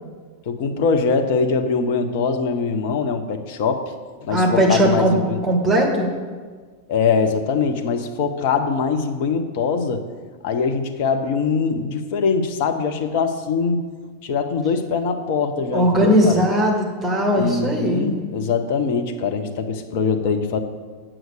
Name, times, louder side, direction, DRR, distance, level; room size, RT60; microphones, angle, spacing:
voice 1, 0.5-3.9 4.2-5.4 6.9-10.0 10.4-13.8 14.2-16.4 17.3-20.6, left 5 dB, 50° left, 6 dB, 0.8 m, -22 dB
voice 2, 4.3-5.1 5.4-6.1 15.7-18.1, equal, 5° right, -1 dB, 2.0 m, -18 dB
8.0 x 6.0 x 6.6 m, 1.5 s
figure-of-eight pair, 90°, 0 cm